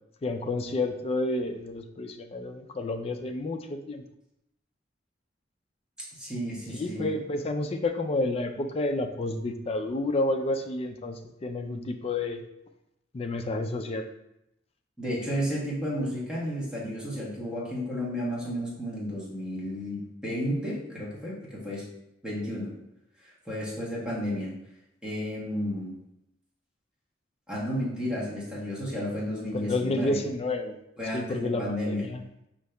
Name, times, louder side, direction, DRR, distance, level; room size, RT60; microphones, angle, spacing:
voice 1, 0.2-4.0 6.7-12.4 13.1-14.1 29.5-30.8 31.1-32.2, left 2 dB, 35° left, 7 dB, 0.4 m, -30 dB
voice 2, 6.0-7.1 15.0-21.9 22.2-22.7 23.5-24.5 25.0-25.9 27.5-30.2 31.0-32.0, equal, 5° right, -7 dB, 1.2 m, -32 dB
5.2 x 2.8 x 3.3 m, 0.84 s
head